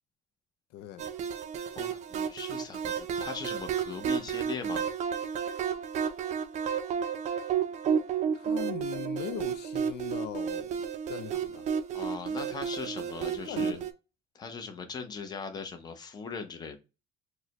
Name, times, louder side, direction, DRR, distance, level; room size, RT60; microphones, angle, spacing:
voice 1, 0.7-1.1 8.3-10.8 11.1-11.7 13.2-13.9, left 12 dB, 80° left, 0.4 m, -40 dB
sound 1, 1.0-13.9, right 7 dB, 45° right, 0.4 m, -32 dB
voice 2, 1.8-4.8 11.9-13.8 14.3-16.8, left 5 dB, 25° left, 0.7 m, -39 dB
4.8 x 2.2 x 2.9 m
cardioid pair, 165°, 17 cm